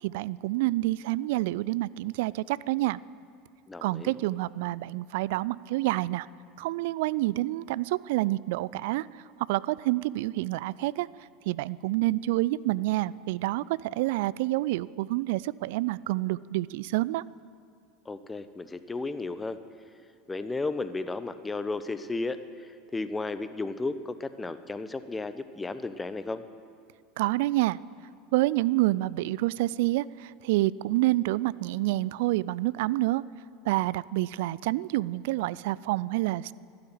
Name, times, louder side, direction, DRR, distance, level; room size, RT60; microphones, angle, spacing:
voice 1, 0.0-3.0 3.8-6.3 6.6-9.1 9.5-11.1 11.5-17.2 27.2-27.8 28.3-33.2 33.7-36.5, right 18 dB, 65° right, 20 dB, 0.3 m, -28 dB
voice 2, 3.7-4.1 18.1-19.6 20.3-26.4, left 3 dB, 15° left, 12 dB, 0.8 m, -34 dB
12.0 x 12.0 x 9.1 m, 2.3 s
hypercardioid pair, 80°, 0 cm